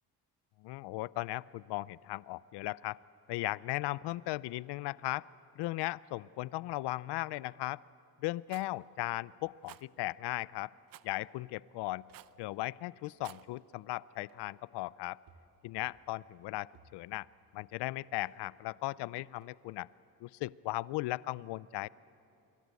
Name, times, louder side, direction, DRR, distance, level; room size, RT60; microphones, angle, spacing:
voice 1, 0.6-3.0 3.3-5.3 5.6-7.8 8.2-10.7 11.0-12.0 12.4-15.2 15.6-17.3 17.5-19.9 20.2-21.9, left 18 dB, 85° left, 20 dB, 0.5 m, -37 dB
Rattle, 8.5-8.7 9.6-9.8 10.9-11.1 12.1-12.4 13.1-13.5, right 14 dB, 55° right, 0.6 m, -52 dB
sound 1, 12.1-12.5 13.3-13.6 14.3-14.6 15.3-15.5 15.8-16.1 16.7-17.3 18.2-18.6 19.4-19.6, right 4 dB, 80° right, 3.9 m, -63 dB
28.5 x 23.5 x 8.2 m, 2.9 s
cardioid pair, 160°, 40 cm